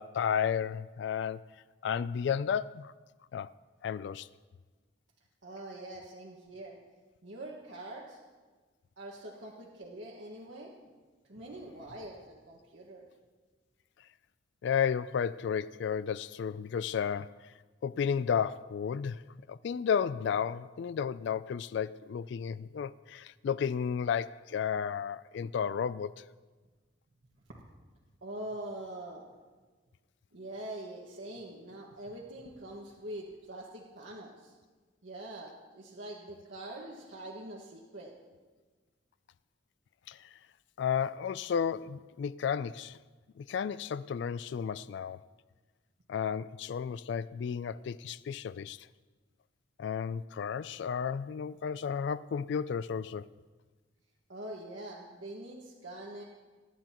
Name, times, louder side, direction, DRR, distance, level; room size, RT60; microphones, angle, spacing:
voice 1, 0.0-1.4 1.8-2.9 3.3-3.5 3.8-4.3 14.6-17.4 17.8-19.2 19.5-26.2 40.1-40.3 40.8-43.0 43.4-45.2 46.1-48.9 49.8-53.3, left 7 dB, 65° left, 0.3 m, -33 dB
voice 2, 5.4-6.8 7.2-8.2 9.0-10.7 11.3-13.0 28.2-29.2 30.3-34.5 35.0-38.1 54.3-56.2, right 1 dB, 80° right, 1.6 m, -44 dB
23.5 x 11.0 x 3.0 m
head